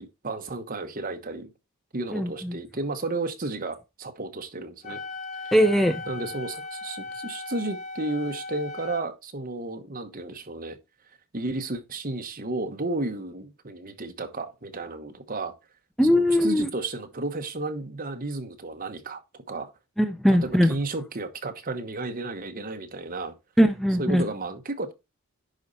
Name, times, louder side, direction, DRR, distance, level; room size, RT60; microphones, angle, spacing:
voice 1, 0.0-1.5 1.9-5.0 5.4-5.5 6.1-10.8 11.3-15.5 16.1-19.7 20.3-23.3 24.0-24.9, right 2 dB, 40° right, 1.1 m, -33 dB
voice 2, 2.1-2.6 5.5-6.0 16.0-16.7 20.0-20.7 23.6-24.3, equal, ahead, 0.4 m, -20 dB
Wind instrument woodwind instrument, 4.8-9.1, left 3 dB, 35° left, 0.8 m, -37 dB
10.5 x 4.3 x 4.1 m
head